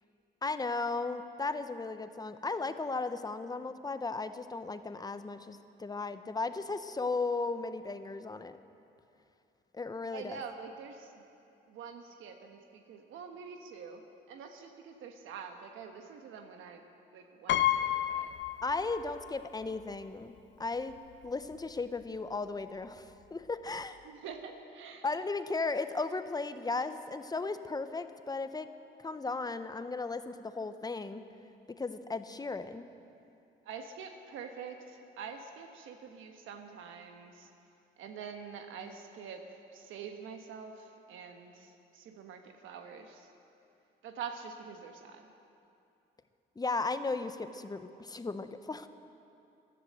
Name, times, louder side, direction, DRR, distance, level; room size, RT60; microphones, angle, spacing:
voice 1, 0.4-8.6 9.7-10.4 18.6-20.3 20.6-21.0 21.2-24.0 25.0-28.7 29.0-31.2 31.7-32.9 46.6-48.9, left 3 dB, 20° left, 11 dB, 0.7 m, -35 dB
voice 2, 10.1-11.2 11.7-14.0 14.3-16.8 17.1-18.3 24.0-25.1 33.6-37.5 38.0-43.3 44.0-45.3, right 6 dB, 85° right, 5 dB, 1.2 m, -46 dB
Piano, 17.5-19.3 19.6-19.7 20.9-21.0 21.3-21.5, left 12 dB, 65° left, 0.6 m, -31 dB
14.5 x 11.0 x 7.5 m, 2.7 s
cardioid pair, 90°, 20 cm